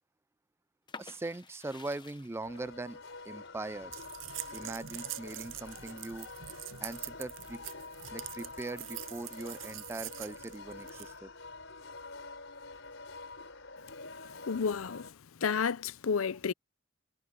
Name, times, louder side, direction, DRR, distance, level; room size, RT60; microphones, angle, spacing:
sound 1, 0.9-6.5 7.0-7.8, left 4 dB, 20° left, 0.9 m, -53 dB
voice 1, 1.0-4.0 4.5-6.3 6.8-7.6 8.1-11.3, right 2 dB, 10° right, 0.3 m, -41 dB
sound 2, 2.4-15.1, left 3 dB, 65° left, 5.4 m, -47 dB
sound 3, 3.9-11.2, right 15 dB, 65° right, 0.6 m, -44 dB
voice 2, 14.5-15.1 15.4-16.5, left 6 dB, 85° left, 0.6 m, -31 dB
head